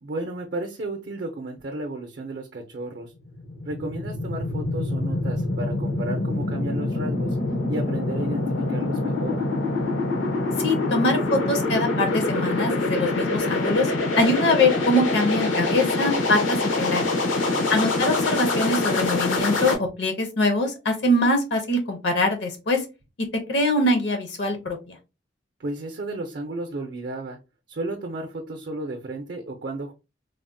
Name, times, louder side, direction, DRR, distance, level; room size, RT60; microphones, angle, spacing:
voice 1, 0.0-3.1 3.6-7.4 7.7-8.4 8.7-9.4 17.2-17.7 25.6-27.4 27.7-29.9, right 2 dB, 55° right, 3 dB, 0.5 m, -33 dB
Wobbly Pitch Modulation Riser, 3.2-19.7, left 2 dB, 85° left, 0.8 m, -25 dB
voice 2, 10.6-13.9 14.2-17.0 17.7-22.8 23.2-24.9, left 2 dB, 60° left, 4 dB, 0.6 m, -23 dB
3.4 x 2.0 x 2.5 m, 0.27 s
head